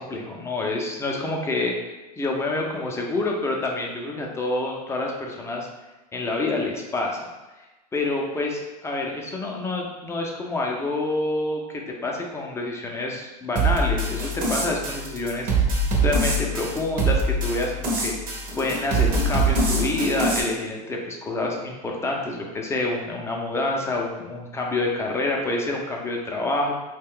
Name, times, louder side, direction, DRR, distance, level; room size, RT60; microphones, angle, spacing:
voice 1, 0.0-5.7 6.1-7.3 7.9-15.5 16.0-18.1 18.5-26.7, left 2 dB, 15° left, 0 dB, 0.5 m, -27 dB
sound 1, 13.6-20.4, right 2 dB, 40° right, 0.7 m, -24 dB
2.3 x 2.2 x 3.6 m, 1.1 s
hypercardioid pair, 105°, 21 cm